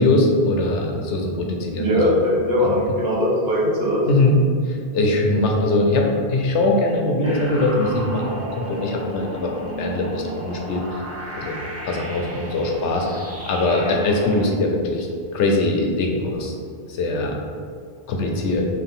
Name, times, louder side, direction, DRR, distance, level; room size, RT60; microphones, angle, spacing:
voice 1, 0.0-2.1 2.6-2.8 4.1-4.4 4.7-11.0 11.3-11.6 11.8-16.5 16.9-17.4 18.1-18.7, left 2 dB, 85° left, 1 dB, 1.0 m, -21 dB
voice 2, 1.8-4.0, left 1 dB, 60° right, -5 dB, 1.3 m, -20 dB
sound 1, 7.2-14.5, right 1 dB, 15° right, 0.6 m, -34 dB
4.6 x 3.1 x 3.6 m, 2.2 s
omnidirectional pair, 1.2 m